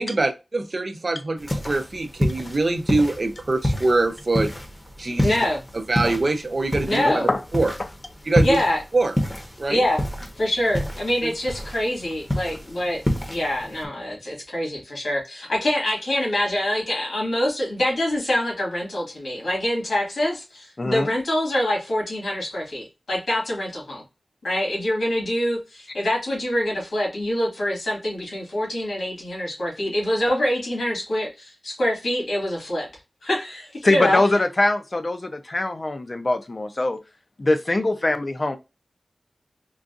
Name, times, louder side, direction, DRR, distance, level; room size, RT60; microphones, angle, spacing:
voice 1, 0.0-4.5 5.0-5.3 5.7-7.7 8.2-8.6 8.9-9.1 9.6-9.8 11.2-11.3, right 2 dB, 50° right, 0.6 m, -24 dB
sound 1, 1.4-13.9, left 1 dB, 20° left, 0.9 m, -29 dB
voice 2, 5.2-5.6 6.8-7.3 8.4-8.8 9.7-10.0 10.4-13.0 13.3-24.0 24.4-32.9 33.2-34.2, left 1 dB, 85° left, 2.1 m, -25 dB
voice 3, 7.0-7.4 20.8-21.1 33.8-37.0 37.4-38.6, left 2 dB, 40° left, 0.6 m, -22 dB
3.8 x 2.4 x 2.4 m
wide cardioid pair, 75°, 0 cm